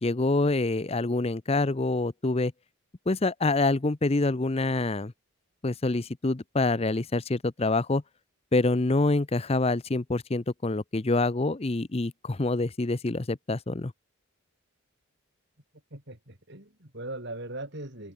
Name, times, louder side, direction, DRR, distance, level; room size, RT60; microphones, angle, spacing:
voice 1, 0.0-2.5 3.1-5.1 5.6-8.0 8.5-13.9, left 2 dB, 30° left, 0.6 m, -26 dB
voice 2, 15.9-18.1, right 2 dB, 55° right, 5.3 m, -39 dB
head